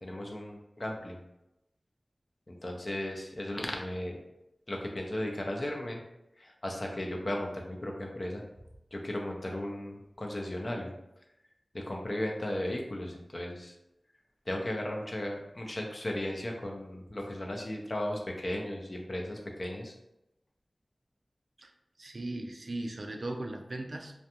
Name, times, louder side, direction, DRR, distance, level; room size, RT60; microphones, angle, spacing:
voice 1, 0.0-1.2 2.5-4.2 4.7-6.0 6.4-8.4 8.9-10.9 11.7-13.7 14.5-19.9, left 1 dB, 50° left, 0 dB, 0.5 m, -36 dB
voice 2, 22.0-24.1, right 2 dB, 65° right, 4 dB, 0.3 m, -38 dB
2.4 x 2.2 x 2.8 m, 0.88 s
wide cardioid pair, 40°, 0 cm